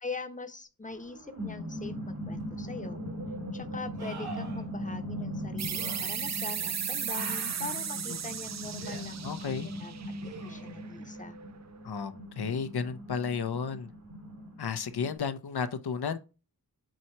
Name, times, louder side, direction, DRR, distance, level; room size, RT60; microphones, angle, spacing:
voice 1, 0.0-3.0 3.5-10.1 10.4-11.4, left 3 dB, 20° left, 0.8 m, -42 dB
sound 1, 0.9-15.2, equal, 70° right, 2.3 m, -40 dB
sound 2, 2.4-2.5 4.0-4.6 5.7-6.0 7.1-7.8 8.8-9.0 10.2-10.9 14.0-14.1, right 3 dB, 85° right, 2.4 m, -44 dB
sound 3, 5.6-10.9, right 8 dB, 45° right, 0.5 m, -36 dB
voice 2, 9.2-9.7 11.8-13.9 14.6-16.2, left 6 dB, 85° left, 0.7 m, -33 dB
7.6 x 2.8 x 4.4 m
wide cardioid pair, 70°, 37 cm